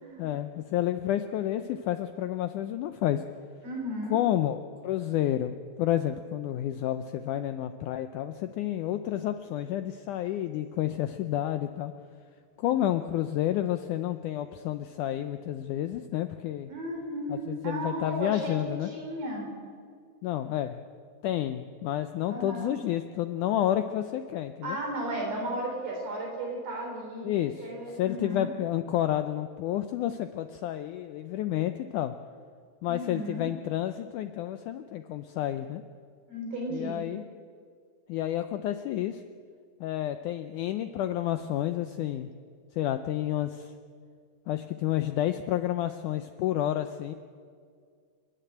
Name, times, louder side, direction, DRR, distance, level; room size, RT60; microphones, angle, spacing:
voice 1, 0.2-3.2 4.1-11.9 12.6-16.7 17.3-18.9 20.2-20.8 21.2-24.8 27.2-32.1 32.8-35.8 36.7-37.2 38.1-39.2 39.8-42.3 42.7-43.7 44.5-47.1, left 12 dB, 90° left, 9 dB, 1.8 m, -30 dB
voice 2, 3.6-4.2 16.7-19.5 22.3-22.7 24.6-27.3 27.6-28.5 32.9-33.5 36.3-37.0, right 1 dB, 70° right, 0 dB, 5.5 m, -34 dB
29.0 x 10.0 x 8.8 m, 2.1 s
omnidirectional pair, 4.3 m